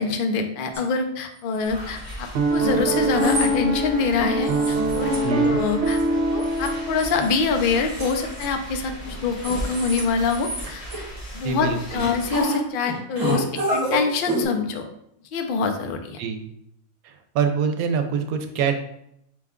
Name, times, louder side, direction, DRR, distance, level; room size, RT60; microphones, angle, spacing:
voice 1, 0.0-5.1 5.4-6.0 6.3-10.8 11.3-14.8 15.3-16.2, left 4 dB, 75° left, 5 dB, 0.5 m, -25 dB
sound 1, 0.7-0.8 1.5-2.1 3.0-3.5 3.9-4.0 4.4-5.2 5.4-6.1 6.4-7.3 7.9-8.9 9.3-10.0 10.3-11.1 12.0-12.6 12.8-14.4, right 1 dB, 30° right, 0.9 m, -29 dB
sound 2, 1.6-12.4, equal, 30° left, 0.8 m, -37 dB
Piano, 2.3-7.6, right 1 dB, 65° right, 0.7 m, -23 dB
voice 2, 5.2-5.6 11.4-12.0 16.2-16.5 17.3-18.8, right 6 dB, 85° right, 7 dB, 1.0 m, -24 dB
4.9 x 2.3 x 3.6 m, 0.76 s
omnidirectional pair, 1.5 m